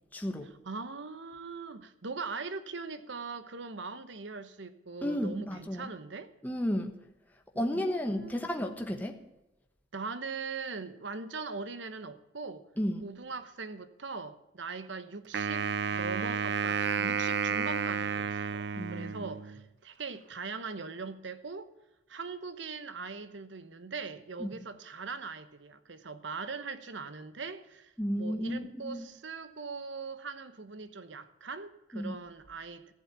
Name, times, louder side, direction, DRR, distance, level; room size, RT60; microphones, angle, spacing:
voice 1, 0.1-0.5 5.0-5.9 6.4-7.0 7.5-9.2 12.8-13.1 18.8-19.3 24.4-24.5 28.0-29.1 31.9-32.1, equal, 10° left, 3 dB, 1.1 m, -33 dB
voice 2, 0.6-6.3 7.5-8.5 9.9-12.6 13.0-18.6 18.9-21.7 22.1-27.9 28.2-32.9, right 4 dB, 75° right, 12 dB, 1.0 m, -41 dB
Wind instrument woodwind instrument, 15.3-19.6, right 6 dB, 60° right, 0.4 m, -31 dB
14.5 x 7.7 x 7.0 m, 0.95 s
head